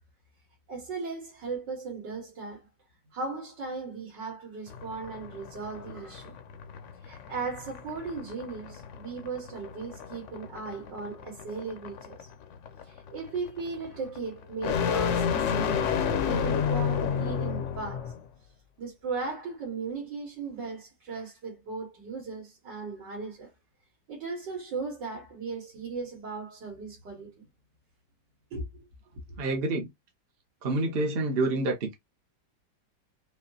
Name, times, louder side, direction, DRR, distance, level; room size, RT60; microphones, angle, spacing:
voice 1, 0.7-2.7 3.1-6.3 7.0-12.3 12.9-18.1 18.8-23.5 24.1-27.4 28.5-28.9 29.3-29.4, right 4 dB, 75° right, 2.1 m, -37 dB
sound 1, 4.7-18.2, left 7 dB, 70° left, 0.7 m, -31 dB
voice 2, 29.4-29.9 30.6-31.9, right 2 dB, 50° right, 0.7 m, -27 dB
5.1 x 2.4 x 2.7 m
omnidirectional pair, 1.9 m